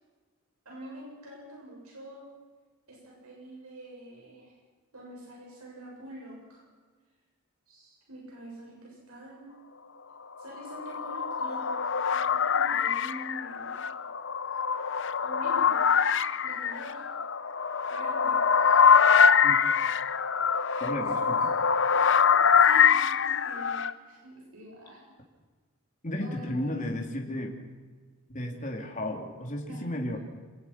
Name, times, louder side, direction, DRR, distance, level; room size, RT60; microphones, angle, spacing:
voice 1, 0.6-2.2 2.9-4.5 4.9-6.6 7.7-9.4 10.4-11.7 12.1-13.8 15.2-15.8 16.4-17.0 17.9-18.4 21.0-21.4 22.5-25.0 26.2-26.8 29.7-29.9, right 1 dB, 90° right, -3 dB, 7.9 m, -45 dB
sound 1, 10.5-23.9, left 6 dB, 60° left, 0.9 m, -24 dB
voice 2, 20.8-21.3 26.0-27.5 28.3-30.2, left 1 dB, 35° left, 1 dB, 3.1 m, -33 dB
28.0 x 19.0 x 6.0 m, 1.4 s
head